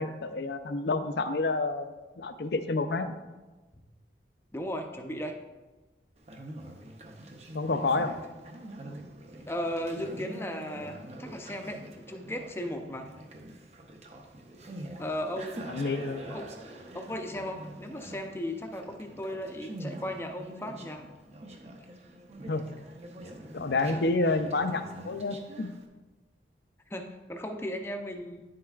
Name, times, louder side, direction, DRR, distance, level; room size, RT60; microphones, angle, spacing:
voice 1, 0.0-3.1 7.5-8.1 15.7-16.3 22.5-22.7 23.5-25.7, left 3 dB, 70° left, 9 dB, 0.5 m, -29 dB
voice 2, 4.5-5.4 9.5-11.8 12.1-13.1 15.0-15.6 16.3-16.5 16.9-21.0 23.9-24.0 26.9-28.4, equal, 15° left, 4 dB, 0.6 m, -36 dB
Conversation, 6.2-25.9, right 1 dB, 35° right, 0.7 m, -45 dB
9.9 x 7.6 x 2.4 m, 1.2 s
head